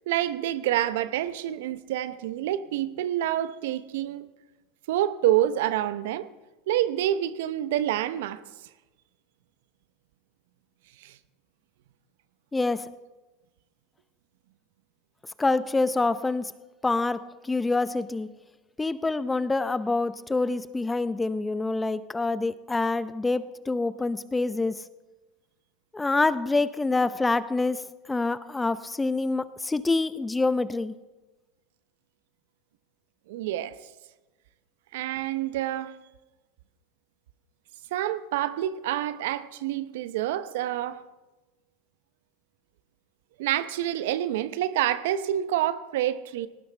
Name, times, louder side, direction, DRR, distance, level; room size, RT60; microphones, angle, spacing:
voice 1, 0.1-4.3 4.9-6.3 6.7-8.4 11.0-11.2 33.3-33.8 34.9-36.0 37.9-41.0 43.4-46.5, right 12 dB, 70° right, 0.8 m, -27 dB
voice 2, 12.5-12.9 15.4-16.5 16.8-18.3 18.8-24.7 25.9-27.8 28.1-30.9, left 3 dB, 15° left, 0.7 m, -26 dB
18.5 x 18.0 x 3.4 m
hypercardioid pair, 85°, 0 cm